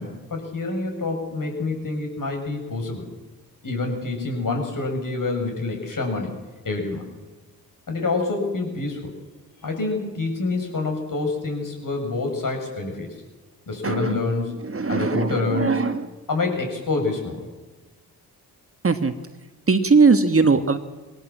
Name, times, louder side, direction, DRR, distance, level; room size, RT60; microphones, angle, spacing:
voice 1, 0.0-3.1 3.6-6.3 6.6-7.1 7.9-9.1 9.6-13.1 13.7-14.5 14.9-15.8 16.3-17.5, left 3 dB, 50° left, 3 dB, 7.1 m, -27 dB
voice 2, 13.8-14.2 14.6-16.1 18.8-19.1 19.7-20.8, right 4 dB, 35° right, 9 dB, 1.6 m, -19 dB
20.0 x 18.0 x 7.5 m, 1.2 s
supercardioid pair, 50°, 41 cm